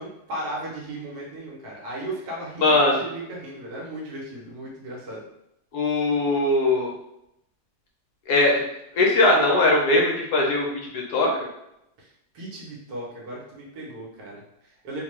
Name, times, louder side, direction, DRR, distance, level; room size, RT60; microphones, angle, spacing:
voice 1, 0.0-5.2 12.0-15.0, right 1 dB, 65° right, -3 dB, 1.2 m, -36 dB
voice 2, 2.6-3.0 5.7-6.9 8.3-8.6 8.9-10.7 10.9-11.3, left 2 dB, 75° left, -1 dB, 1.0 m, -20 dB
2.8 x 2.2 x 3.0 m, 0.82 s
omnidirectional pair, 1.9 m